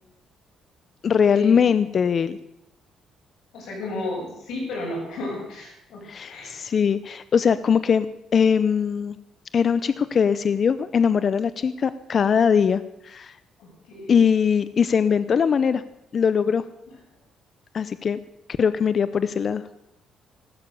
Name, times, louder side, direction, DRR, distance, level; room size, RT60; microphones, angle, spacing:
voice 1, 1.0-2.4 6.1-8.1 8.3-9.2 9.5-13.3 14.1-15.8 16.1-16.6 17.7-18.2 18.6-19.6, left 6 dB, 45° left, 14 dB, 0.6 m, -21 dB
voice 2, 3.5-6.5 13.6-14.2, left 2 dB, 80° left, -1 dB, 7.7 m, -33 dB
16.0 x 12.0 x 6.8 m, 0.82 s
cardioid pair, 115°, 0 cm